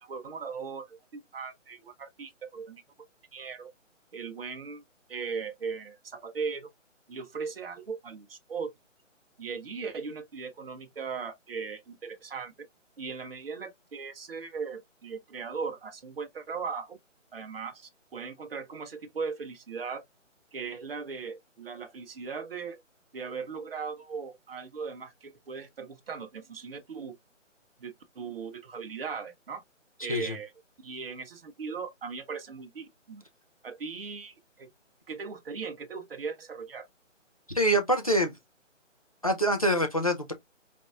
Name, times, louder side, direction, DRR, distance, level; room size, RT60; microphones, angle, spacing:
voice 1, 0.0-2.8 3.3-3.7 4.1-4.8 5.1-6.7 7.1-8.7 9.4-12.7 13.0-17.0 17.3-20.0 20.5-22.8 23.1-27.1 27.8-29.6 30.0-30.5 30.8-33.2 33.6-34.7 35.1-36.9, right 5 dB, 50° right, 0.9 m, -38 dB
voice 2, 37.5-38.4 39.2-40.3, equal, 30° left, 0.4 m, -25 dB
4.3 x 3.0 x 2.3 m
hypercardioid pair, 165°, 38 cm